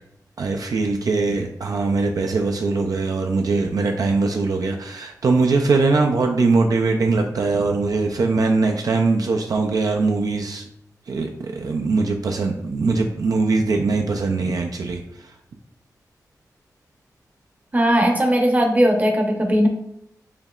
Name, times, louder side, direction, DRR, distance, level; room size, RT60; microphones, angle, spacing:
voice 1, 0.4-10.6 11.1-15.3, right 3 dB, 65° right, 3 dB, 0.3 m, -21 dB
voice 2, 17.7-19.7, equal, 25° right, 2 dB, 0.7 m, -18 dB
5.1 x 2.8 x 2.3 m, 0.78 s
wide cardioid pair, 100°, 7 cm